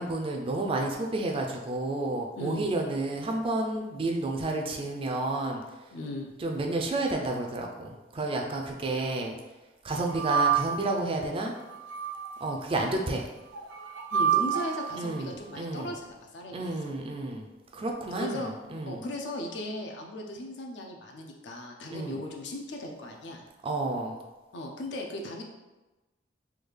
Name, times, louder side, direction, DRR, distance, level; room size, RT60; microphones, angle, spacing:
voice 1, 0.0-5.6 6.4-9.4 9.8-11.5 12.4-13.3 15.0-15.9 16.5-17.5 17.7-19.1 21.9-22.2 23.6-24.2, right 2 dB, 30° right, 2 dB, 0.4 m, -31 dB
voice 2, 5.9-6.3 14.1-16.8 18.1-18.5 18.9-23.4 24.5-25.4, left 1 dB, 70° left, 2 dB, 0.5 m, -37 dB
sound 1, 10.1-11.0 11.7-12.6 13.5-15.0, right 8 dB, 85° right, 0.4 m, -28 dB
3.5 x 2.3 x 3.2 m, 1.1 s
head